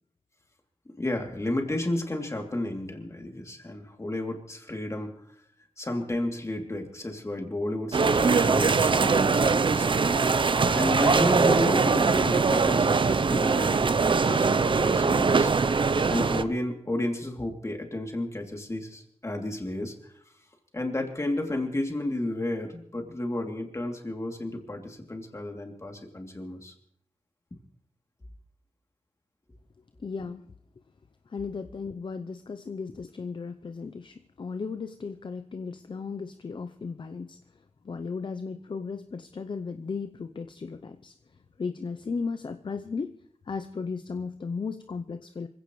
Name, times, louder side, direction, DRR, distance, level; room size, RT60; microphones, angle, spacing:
voice 1, 1.0-5.2 5.8-9.9 10.7-15.5 16.1-20.1 20.7-26.7, left 1 dB, 25° left, 2 dB, 2.9 m, -32 dB
sound 1, 7.9-16.4, right 4 dB, 50° right, 0.7 m, -22 dB
voice 2, 30.0-30.4 31.3-37.4 37.8-41.1 41.6-43.2 43.5-45.5, left 5 dB, 45° left, 9 dB, 0.7 m, -35 dB
25.5 x 16.0 x 3.2 m, 0.66 s
wide cardioid pair, 105°, 11 cm